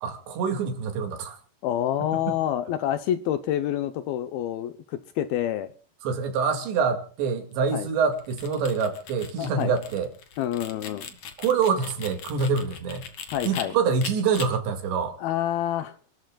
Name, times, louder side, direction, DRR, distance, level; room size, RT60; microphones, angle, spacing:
voice 1, 0.0-1.4 6.0-10.1 11.4-13.1 13.4-15.2, right 5 dB, 80° right, 6 dB, 4.4 m, -25 dB
voice 2, 1.6-5.7 7.7-7.9 9.4-9.7 10.4-11.1 13.3-13.7 15.2-16.0, left 11 dB, 75° left, 10 dB, 2.4 m, -27 dB
sound 1, 8.1-13.6 14.0-14.5, left 7 dB, 50° left, 2.6 m, -39 dB
30.0 x 13.0 x 2.3 m, 0.42 s
omnidirectional pair, 5.0 m